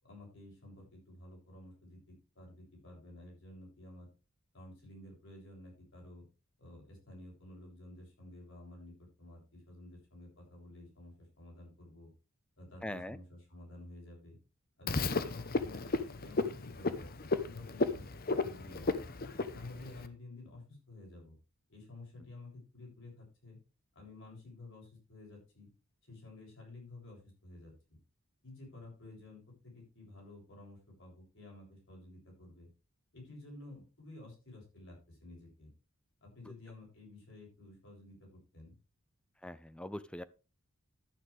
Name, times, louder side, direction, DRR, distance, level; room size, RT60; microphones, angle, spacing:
voice 1, 0.0-4.1 4.5-6.2 6.6-12.1 12.6-14.4 14.8-18.1 18.3-19.1 19.5-21.4 21.7-23.6 23.9-25.7 26.0-27.7 28.4-32.7 33.1-35.7 36.2-38.7, left 2 dB, 60° left, -1 dB, 7.4 m, -52 dB
voice 2, 12.8-13.2 39.4-40.2, left 1 dB, 5° left, 15 dB, 0.4 m, -41 dB
Frog, 14.9-20.1, left 3 dB, 45° left, 0.9 m, -34 dB
12.0 x 9.8 x 3.4 m, 0.30 s
head